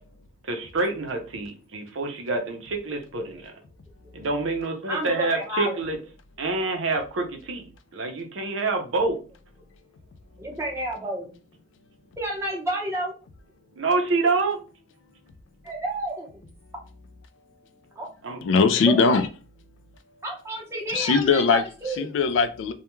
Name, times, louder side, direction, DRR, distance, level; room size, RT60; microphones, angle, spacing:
voice 1, 0.5-3.5 4.1-6.0 6.4-7.7 7.9-9.2 13.8-14.6 18.2-18.4, right 3 dB, 75° right, 0.6 m, -27 dB
voice 2, 4.9-5.8 10.4-11.3 12.2-13.1 15.6-16.5 18.0-18.1 18.8-19.2 20.2-22.1, right 1 dB, 15° right, 0.7 m, -30 dB
voice 3, 18.4-19.3 20.9-21.6 22.0-22.7, left 5 dB, 75° left, 0.3 m, -20 dB
2.2 x 2.2 x 3.0 m
head